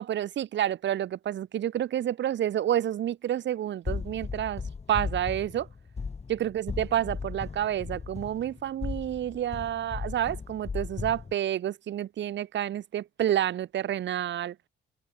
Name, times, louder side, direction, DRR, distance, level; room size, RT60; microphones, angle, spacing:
voice 1, 0.0-4.6 4.9-5.7 6.3-14.5, right 11 dB, 65° right, 1.2 m, -29 dB
sound 1, 3.9-11.3, left 5 dB, 30° left, 3.6 m, -36 dB
open air
cardioid pair, 90°, 20 cm